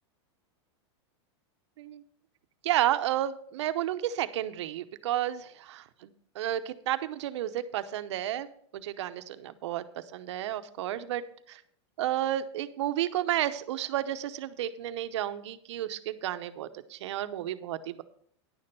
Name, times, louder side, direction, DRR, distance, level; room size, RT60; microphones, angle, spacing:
voice 1, 2.6-8.5 8.7-9.8 10.1-11.2 11.5-11.6 12.0-18.0, right 12 dB, 75° right, 11 dB, 0.8 m, -32 dB
10.5 x 6.7 x 5.5 m, 0.63 s
supercardioid pair, 155°, 15 cm